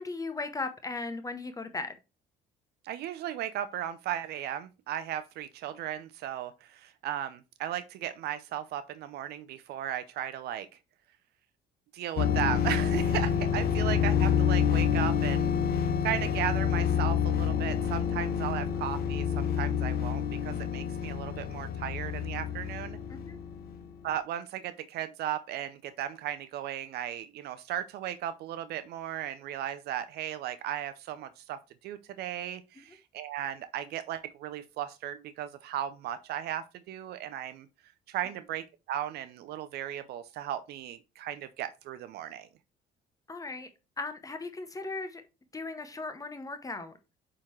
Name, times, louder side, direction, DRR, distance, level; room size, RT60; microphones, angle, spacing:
voice 1, 0.0-2.0 23.1-23.4 43.3-43.7 44.0-45.2 45.5-46.9, left 3 dB, 20° left, 0.8 m, -37 dB
voice 2, 2.8-10.7 11.9-23.0 24.0-37.7 38.1-42.5, right 11 dB, 70° right, 0.5 m, -36 dB
sound 1, 12.2-23.8, left 8 dB, 65° left, 0.7 m, -28 dB
8.7 x 3.7 x 3.1 m
cardioid pair, 110°, 17 cm